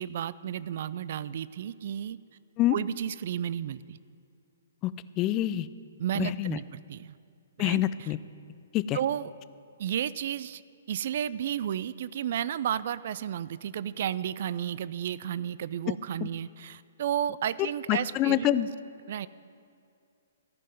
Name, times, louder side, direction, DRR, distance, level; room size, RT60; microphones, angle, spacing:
voice 1, 0.0-2.2 2.7-4.0 6.0-7.2 7.6-8.1 8.9-9.3 9.8-10.6 10.9-18.6 19.1-19.3, right 10 dB, 50° right, 18 dB, 0.4 m, -32 dB
voice 2, 5.2-5.7 6.1-6.6 7.6-8.2 8.7-9.0 16.2-16.3 17.9-18.7, left 14 dB, 30° left, 15 dB, 0.4 m, -26 dB
14.5 x 5.5 x 9.3 m, 2.4 s
figure-of-eight pair, 125°, 0 cm